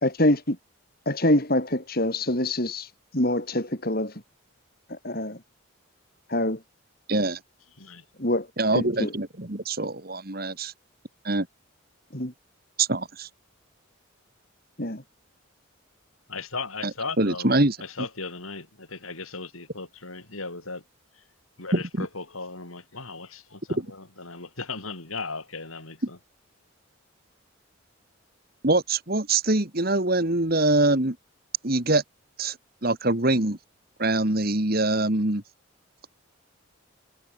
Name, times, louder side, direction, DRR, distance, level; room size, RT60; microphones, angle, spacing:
voice 1, 0.0-0.6 1.1-2.9 3.1-4.1 4.9-5.4 6.3-6.6 8.2-8.5 8.7-9.1 12.1-12.3 14.8-15.0, left 1 dB, 45° left, 4.1 m, -25 dB
voice 2, 7.1-7.4 8.6-10.7 11.2-11.5 12.8-13.3 17.2-17.8 21.7-22.1 23.7-23.9 28.6-31.2 31.6-32.0 32.4-32.6 32.8-33.6 34.0-35.4, right 2 dB, 45° right, 2.1 m, -24 dB
voice 3, 16.3-20.8 21.1-21.2 21.6-26.2, left 4 dB, 85° left, 7.1 m, -37 dB
head